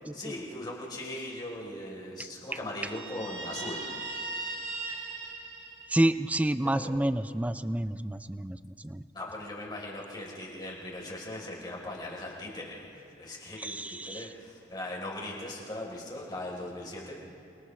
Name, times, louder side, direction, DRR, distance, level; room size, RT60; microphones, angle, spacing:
voice 1, 0.1-3.8 6.7-7.0 9.1-17.2, left 1 dB, 25° left, -3 dB, 3.8 m, -39 dB
Guitar, 2.8-6.4, right 3 dB, 75° right, 4.4 m, -38 dB
voice 2, 5.9-9.0 13.6-14.3, right 1 dB, 10° right, 12 dB, 0.4 m, -29 dB
28.5 x 28.5 x 3.3 m, 2.7 s
head